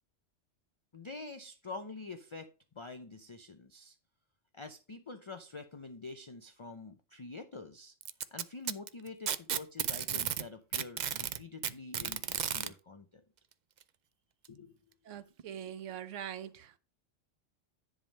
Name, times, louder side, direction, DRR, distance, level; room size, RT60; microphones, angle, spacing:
voice 1, 0.9-2.5 2.7-4.0 4.5-7.9 8.3-13.2 14.5-14.8, left 3 dB, 30° left, 0.6 m, -46 dB
Packing tape duct tape, 8.0-10.4 10.7-12.7 13.8-13.9 14.4-14.5 15.4-15.5, right 8 dB, 55° right, 0.5 m, -33 dB
voice 2, 15.1-16.8, right 9 dB, 80° right, 1.0 m, -43 dB
10.5 x 3.6 x 5.3 m
omnidirectional pair, 1.3 m